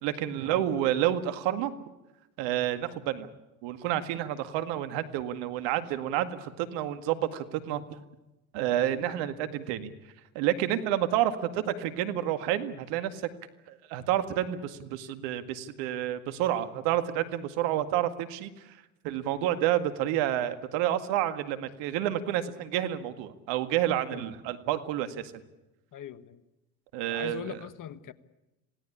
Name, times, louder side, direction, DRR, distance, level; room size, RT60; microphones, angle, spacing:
voice 1, 0.0-1.7 2.4-3.3 3.6-8.0 8.5-9.9 10.4-13.3 13.7-18.8 19.0-25.3 26.9-27.6, right 12 dB, 65° right, 10 dB, 2.0 m, -29 dB
voice 2, 25.9-26.4 27.0-28.1, left 10 dB, 40° left, 14 dB, 1.4 m, -41 dB
27.0 x 17.5 x 8.5 m, 1.0 s
hypercardioid pair, 80°, 47 cm